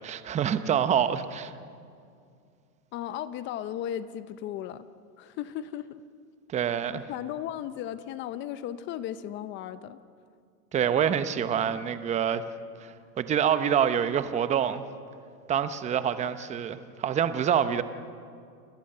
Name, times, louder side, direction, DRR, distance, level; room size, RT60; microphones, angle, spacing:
voice 1, 0.0-1.5 6.5-7.0 10.7-12.4 12.8-14.8 15.5-17.8, right 8 dB, 15° right, 12 dB, 0.8 m, -26 dB
voice 2, 2.9-4.9 5.2-6.0 6.9-10.0, left 11 dB, 25° left, 14 dB, 0.6 m, -36 dB
29.0 x 20.5 x 6.7 m, 2.3 s
supercardioid pair, 140°, 46 cm